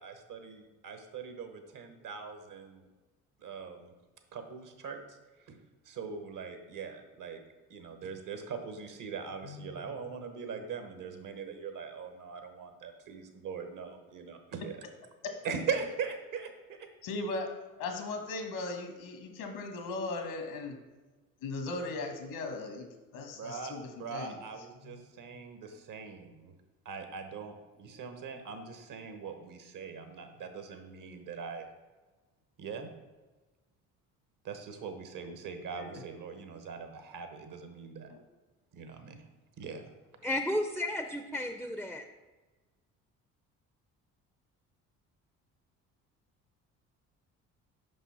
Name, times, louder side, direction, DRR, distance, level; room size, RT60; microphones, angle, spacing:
voice 1, 0.0-2.8 3.4-3.9 4.3-5.0 5.5-5.6 5.8-7.4 7.7-14.8 15.4-16.8 23.3-26.5 26.8-31.7 32.6-32.9 34.4-38.1 38.7-39.2 39.6-39.8, right 6 dB, 60° right, 7 dB, 1.1 m, -41 dB
voice 2, 9.4-9.9 17.0-17.5 17.8-20.8 21.4-22.9 23.1-24.4 24.8-25.1 35.8-35.9 38.1-38.2, left 3 dB, 75° left, 4 dB, 1.4 m, -38 dB
voice 3, 40.2-42.0, left 1 dB, ahead, 6 dB, 0.5 m, -33 dB
5.6 x 5.4 x 4.2 m, 1.2 s
supercardioid pair, 60°, 37 cm